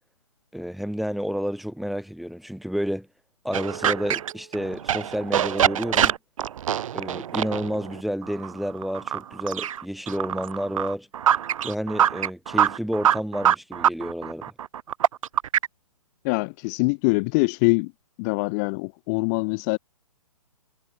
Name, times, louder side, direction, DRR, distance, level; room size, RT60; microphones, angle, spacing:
voice 1, 0.5-3.1 3.4-6.1 6.9-11.1 11.6-14.4, equal, ahead, 1.1 m, -30 dB
sound 1, 3.5-15.7, right 10 dB, 60° right, 0.5 m, -24 dB
voice 2, 16.2-17.9 18.2-19.8, left 32 dB, 25° left, 0.9 m, -23 dB
hypercardioid pair, 140°, 19 cm